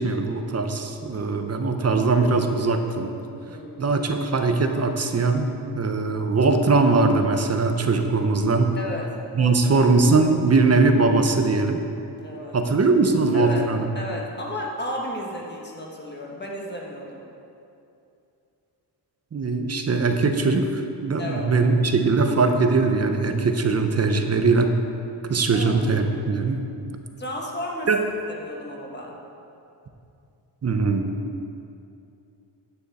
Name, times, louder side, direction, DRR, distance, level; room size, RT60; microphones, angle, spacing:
voice 1, 0.0-3.1 3.8-8.7 9.4-11.8 12.5-13.9 19.3-24.7 25.3-26.6 27.9-28.0 30.6-31.1, right 3 dB, 35° right, 6 dB, 0.7 m, -21 dB
voice 2, 3.5-4.0 8.8-9.0 9.4-9.9 12.2-12.6 13.3-13.7 13.9-17.2 21.2-21.5 25.5-25.8 27.2-27.9 28.3-29.2, left 1 dB, 25° left, -1 dB, 1.4 m, -33 dB
9.6 x 9.3 x 4.2 m, 2.6 s
wide cardioid pair, 150°, 44 cm